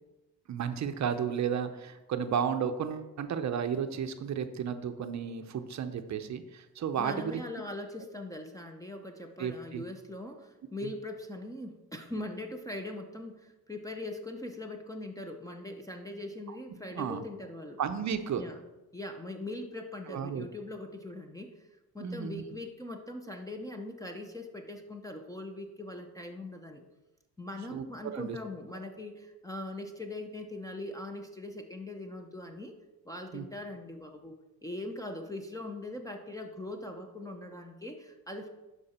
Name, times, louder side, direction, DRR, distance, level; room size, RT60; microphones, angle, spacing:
voice 1, 0.5-7.4 9.4-9.8 16.9-17.2 17.8-18.4 20.1-20.4 22.0-22.4 27.7-27.9 28.1-28.4 33.3-33.5, right 7 dB, 45° right, 8 dB, 0.7 m, -33 dB
voice 2, 7.0-17.8 18.4-18.6 18.9-21.7 21.9-26.8 27.4-32.7 33.0-34.3 34.6-38.5, left 1 dB, 10° left, 4 dB, 0.8 m, -41 dB
11.5 x 4.9 x 4.3 m, 1.1 s
cardioid pair, 105°, 38 cm